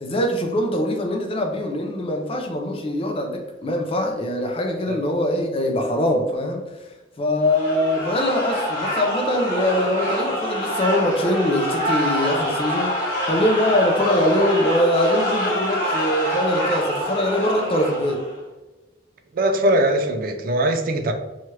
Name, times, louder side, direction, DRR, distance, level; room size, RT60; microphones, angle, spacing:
voice 1, 0.0-6.6 7.2-18.2, left 1 dB, 30° left, 2 dB, 0.4 m, -22 dB
sound 1, 7.4-18.4, equal, 45° left, 1.1 m, -26 dB
voice 2, 19.3-21.1, right 1 dB, 45° right, 6 dB, 0.3 m, -21 dB
2.8 x 2.3 x 3.0 m, 1.1 s
head